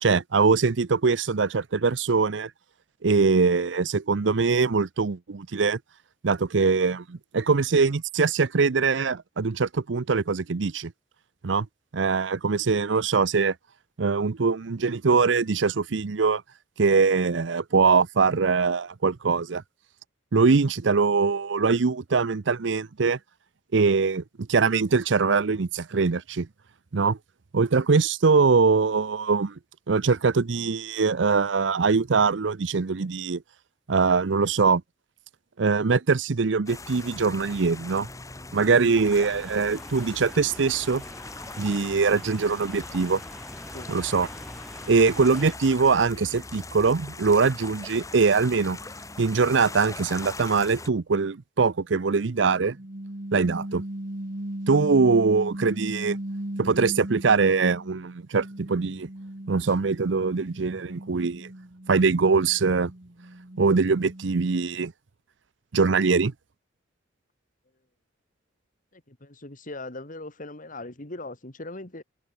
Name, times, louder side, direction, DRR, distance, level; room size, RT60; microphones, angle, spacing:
voice 1, 0.0-2.5 3.0-5.8 6.2-10.9 11.4-11.7 11.9-13.5 14.0-16.4 16.8-19.6 20.3-23.2 23.7-24.2 24.5-26.5 26.9-27.2 27.5-29.5 29.9-33.4 33.9-34.8 35.6-38.1 38.5-41.0 41.6-43.2 43.9-44.3 44.9-48.8 49.2-52.8 53.3-53.8 54.7-56.2 56.6-59.1 59.5-61.5 61.9-62.9 63.6-64.9 65.7-66.3, right 4 dB, 75° right, 0.6 m, -22 dB
sound 1, 36.7-50.9, left 3 dB, 20° left, 1.4 m, -41 dB
sound 2, 39.0-45.6, equal, ahead, 6.3 m, -45 dB
sound 3, 52.7-58.0 58.4-64.6, right 1 dB, 50° right, 2.0 m, -37 dB
voice 2, 68.9-72.0, left 2 dB, 45° left, 2.7 m, -40 dB
head